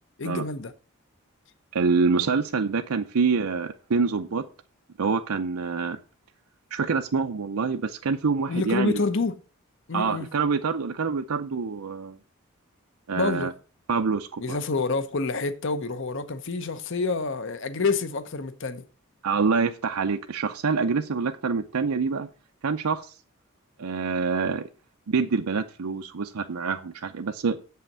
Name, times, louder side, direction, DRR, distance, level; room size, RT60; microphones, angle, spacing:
voice 1, 0.2-0.7 8.5-9.4 9.9-10.3 13.2-13.5 14.4-18.8, left 3 dB, 55° left, 0.8 m, -27 dB
voice 2, 1.7-4.5 5.0-6.0 6.7-9.0 9.9-12.2 13.1-13.5 13.9-14.6 19.2-22.3 22.6-23.2 23.8-24.7 25.1-27.6, right 5 dB, 85° right, 0.6 m, -26 dB
7.6 x 5.7 x 7.2 m
head